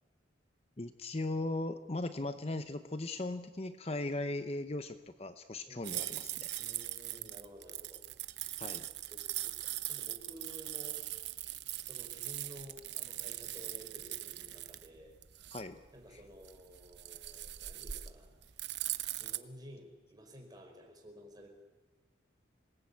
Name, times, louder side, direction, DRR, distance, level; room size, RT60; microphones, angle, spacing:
voice 1, 0.8-6.5 8.6-8.9 15.5-15.8 16.1-16.2, left 2 dB, 30° left, 10 dB, 0.8 m, -38 dB
voice 2, 5.7-6.3 6.6-8.0 9.1-11.0 11.8-15.1 15.9-18.3 19.2-21.5, equal, 20° right, 2 dB, 4.9 m, -53 dB
sound 1, 5.8-19.4, right 14 dB, 65° right, 0.9 m, -41 dB
27.0 x 19.5 x 8.5 m, 1.1 s
head